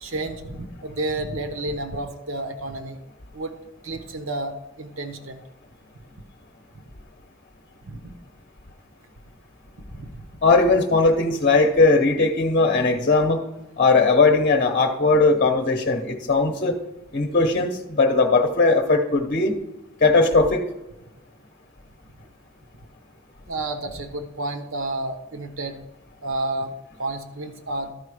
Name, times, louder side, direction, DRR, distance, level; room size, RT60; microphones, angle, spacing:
voice 1, 0.0-3.0 3.3-3.5 3.8-5.4 7.9-8.1 9.9-10.3 23.5-25.8 26.2-26.7 27.0-27.9, right 2 dB, 70° right, 7 dB, 1.1 m, -30 dB
voice 2, 10.4-13.4 13.8-16.8 17.1-19.5 20.0-20.7, left 3 dB, 40° left, 5 dB, 0.8 m, -19 dB
13.0 x 4.8 x 4.9 m, 0.97 s
head